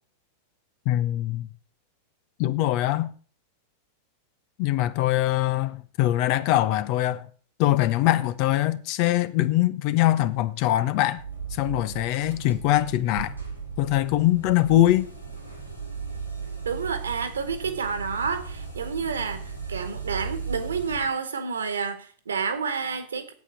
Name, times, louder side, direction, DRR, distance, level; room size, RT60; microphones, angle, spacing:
voice 1, 0.9-1.5 2.4-3.1 4.6-7.3 7.6-11.2 11.5-13.3 13.8-15.1, left 14 dB, 45° left, 0.8 m, -23 dB
sound 1, 11.2-21.1, right 5 dB, 90° left, 3.4 m, -36 dB
voice 2, 16.6-23.3, right 5 dB, 70° right, 1.6 m, -29 dB
8.5 x 8.4 x 8.2 m
figure-of-eight pair, 90°, 0 cm